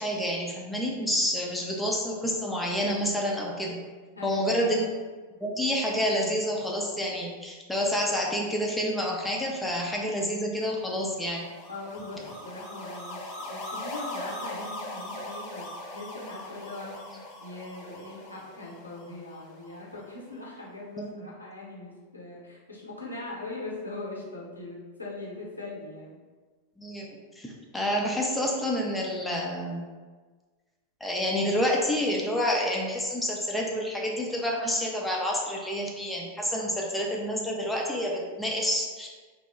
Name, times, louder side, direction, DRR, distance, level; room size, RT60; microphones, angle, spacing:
voice 1, 0.0-3.8 4.2-4.8 5.4-11.5 21.0-21.3 26.8-29.9 31.0-39.1, equal, 5° left, -2 dB, 0.5 m, -28 dB
voice 2, 4.1-4.9 11.7-26.2, left 2 dB, 85° left, -5 dB, 0.7 m, -41 dB
sound 1, 10.8-20.1, left 1 dB, 40° left, 0.7 m, -41 dB
2.8 x 2.0 x 3.5 m, 1.4 s
figure-of-eight pair, 90°, 0 cm